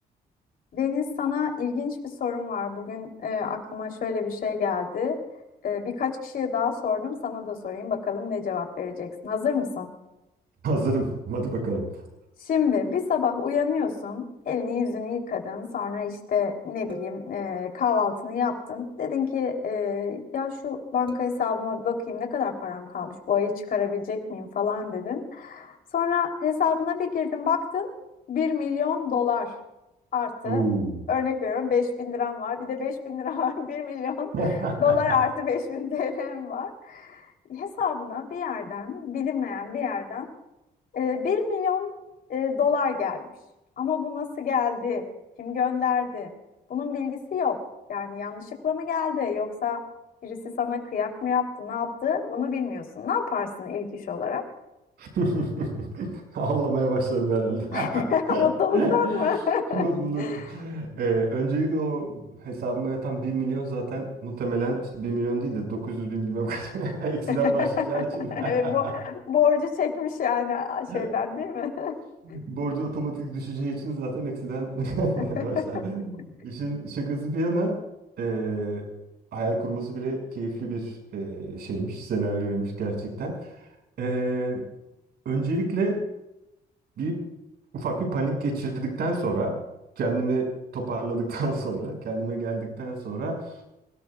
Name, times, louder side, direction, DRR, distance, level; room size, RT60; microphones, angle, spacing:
voice 1, 0.7-5.2 5.6-9.9 12.4-27.9 28.3-29.5 30.1-30.6 31.1-34.3 34.8-40.3 40.9-41.9 42.3-43.2 43.8-45.0 45.4-46.3 46.7-47.6 47.9-49.8 50.2-54.4 57.7-59.8 60.2-60.5 67.3-67.7 67.9-68.0 68.3-71.9 72.3-72.4 75.2-75.4, left 6 dB, 60° left, 3 dB, 3.4 m, -27 dB
voice 2, 10.6-11.9 30.4-31.1 34.3-35.1 55.0-58.5 58.7-59.3 59.7-68.9 70.9-71.0 72.2-77.8 78.2-78.9 79.3-83.7 84.0-84.7 85.2-86.1 87.0-87.2 87.7-89.6 90.0-93.5, right 2 dB, 75° right, 2 dB, 6.0 m, -28 dB
sound 1, 16.9-18.0 21.1-22.2, right 2 dB, 30° right, 2.2 m, -45 dB
27.0 x 17.5 x 2.4 m, 0.93 s
cardioid pair, 90°, 17 cm